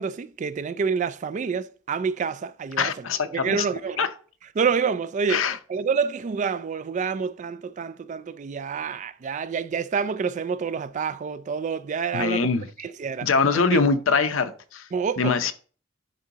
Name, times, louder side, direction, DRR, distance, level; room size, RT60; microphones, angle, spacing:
voice 1, 0.0-4.1 4.6-12.5 12.8-13.3 13.5-13.9 14.9-15.3, right 6 dB, 40° right, 0.3 m, -28 dB
voice 2, 2.8-3.7 4.0-4.1 5.3-5.6 12.1-12.7 13.2-14.9 15.2-15.5, left 5 dB, 85° left, 0.7 m, -23 dB
10.5 x 3.8 x 2.8 m
head